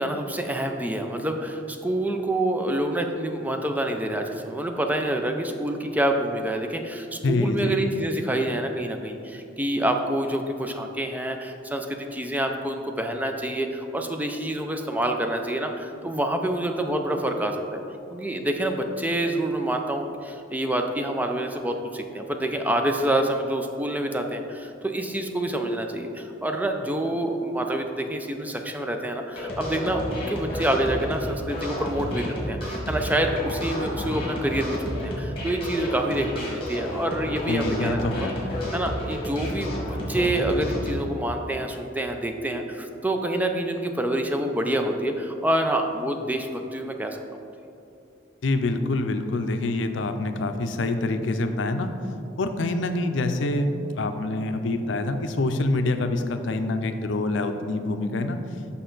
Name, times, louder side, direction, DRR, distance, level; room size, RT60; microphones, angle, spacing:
voice 1, 0.0-17.8 18.1-38.3 38.7-39.8 40.1-47.2, right 1 dB, 10° right, 4 dB, 0.4 m, -27 dB
voice 2, 7.2-7.8 37.5-38.3 48.4-51.9 52.4-58.4, left 2 dB, 85° left, 8 dB, 0.5 m, -26 dB
sound 1, 29.3-40.9, left 1 dB, 30° left, 1.5 m, -31 dB
6.4 x 5.6 x 3.9 m, 2.6 s
head